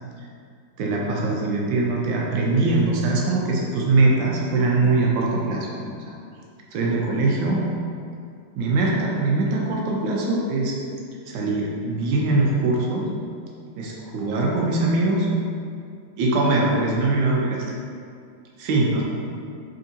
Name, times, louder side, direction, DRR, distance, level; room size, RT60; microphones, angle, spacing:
voice 1, 0.8-6.1 6.7-7.6 8.5-10.7 11.3-13.1 13.8-15.3 16.2-17.6 18.6-19.0, right 2 dB, 90° right, -2 dB, 1.3 m, -22 dB
3.8 x 3.4 x 2.7 m, 2.4 s
omnidirectional pair, 2.0 m